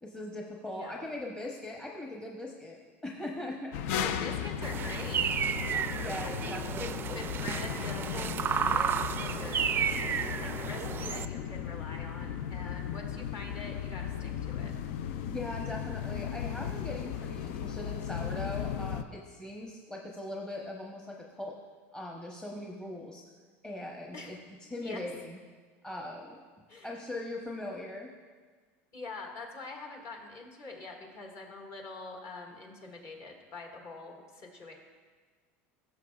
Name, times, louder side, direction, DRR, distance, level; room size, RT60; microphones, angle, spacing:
voice 1, 0.0-3.7 6.0-7.2 15.1-21.5 21.9-23.2 23.6-25.4 25.8-26.4 26.8-28.1, left 1 dB, 10° left, -2 dB, 0.9 m, -40 dB
voice 2, 0.7-1.1 3.9-5.8 6.2-14.7 24.1-24.4 24.8-25.0 26.7-26.9 28.9-34.8, left 3 dB, 50° left, 1 dB, 1.8 m, -44 dB
sound 1, 3.7-19.0, left 9 dB, 80° left, 0.4 m, -36 dB
sound 2, 4.6-11.3, right 7 dB, 30° right, 0.4 m, -32 dB
16.0 x 6.8 x 2.4 m, 1.5 s
supercardioid pair, 110°, 7 cm